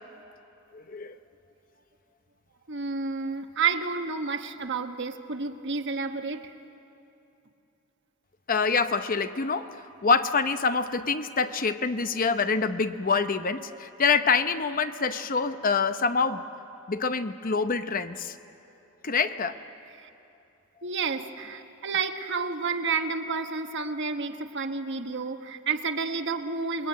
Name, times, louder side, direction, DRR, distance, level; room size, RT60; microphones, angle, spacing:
voice 1, 0.7-1.2 8.5-16.5 16.9-18.4 19.0-19.6, left 5 dB, 40° left, 10 dB, 0.8 m, -26 dB
voice 2, 2.7-6.5 20.0-20.1 20.8-26.9, right 4 dB, 60° right, 7 dB, 1.2 m, -30 dB
27.5 x 22.0 x 9.4 m, 2.8 s
head